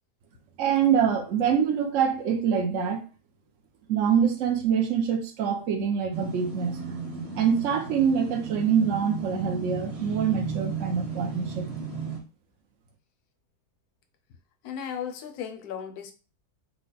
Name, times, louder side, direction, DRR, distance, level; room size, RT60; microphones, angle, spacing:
voice 1, 0.6-3.0 3.9-6.8 7.4-11.6, right 7 dB, 55° right, 1.1 m, -25 dB
sound 1, 6.1-12.2, right 4 dB, 80° right, 1.9 m, -34 dB
voice 2, 14.6-16.1, left 8 dB, 75° left, 1.2 m, -35 dB
4.6 x 2.2 x 3.9 m
omnidirectional pair, 1.7 m